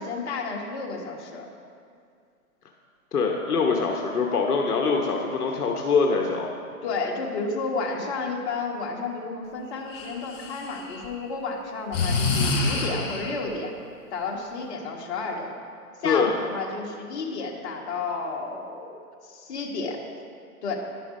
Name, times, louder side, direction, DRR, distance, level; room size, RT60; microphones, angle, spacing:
voice 1, 0.0-1.4 6.8-13.7 14.1-15.5 16.0-20.0 20.6-20.7, left 4 dB, 45° left, -1 dB, 1.5 m, -31 dB
voice 2, 3.1-6.5 16.0-16.3, left 4 dB, 75° left, 1 dB, 1.0 m, -23 dB
Breathing, 9.9-11.1 11.9-13.5, left 3 dB, 15° left, 0.6 m, -26 dB
11.0 x 5.9 x 5.2 m, 2.3 s
hypercardioid pair, 135°, 46 cm